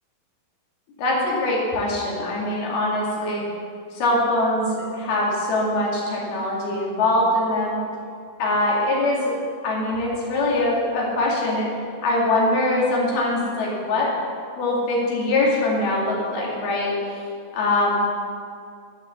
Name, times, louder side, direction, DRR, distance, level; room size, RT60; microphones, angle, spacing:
voice 1, 1.0-3.4 3.9-7.8 8.4-9.4 9.6-11.7 12.0-14.1 14.6-16.9 17.5-18.0, left 2 dB, 80° left, -4 dB, 4.2 m, -22 dB
12.5 x 6.8 x 7.1 m, 2.3 s
omnidirectional pair, 4.4 m